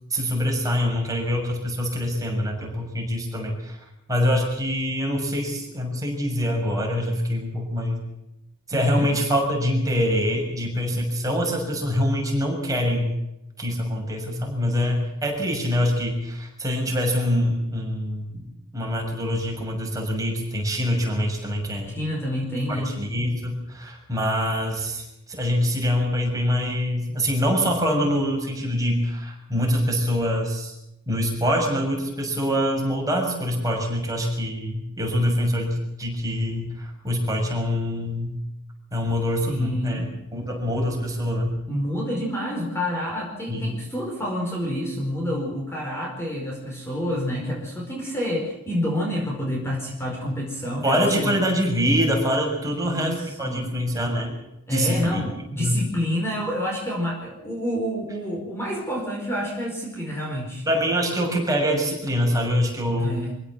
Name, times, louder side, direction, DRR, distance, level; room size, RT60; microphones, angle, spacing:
voice 1, 0.1-3.8 4.1-8.0 8.7-13.2 13.6-18.4 18.7-22.0 22.7-30.7 31.1-38.4 38.9-40.0 40.3-41.6 43.5-43.8 50.8-54.3 54.7-55.2 55.6-55.8 60.7-63.2, equal, 15° right, 0 dB, 6.6 m, -25 dB
voice 2, 8.7-9.1 21.9-22.9 39.5-40.1 41.7-51.4 52.6-53.8 54.7-60.6 63.0-63.3, equal, 10° left, -2 dB, 4.9 m, -28 dB
25.5 x 16.5 x 7.4 m, 0.90 s
head